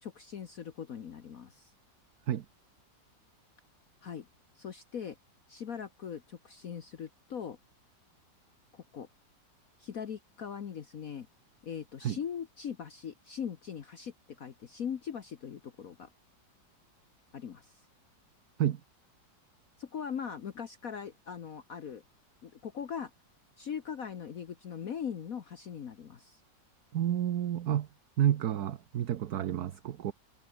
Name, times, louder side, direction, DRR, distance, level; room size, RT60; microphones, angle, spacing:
voice 1, 0.0-1.7 4.0-4.3 4.6-5.2 5.5-7.6 8.7-9.1 9.8-11.3 11.6-16.1 17.3-17.7 19.8-22.0 22.4-23.1 23.6-26.4, left 7 dB, 55° left, 1.5 m, -40 dB
voice 2, 26.9-27.9 28.2-30.1, right 11 dB, 60° right, 1.3 m, -30 dB
omnidirectional pair, 1.9 m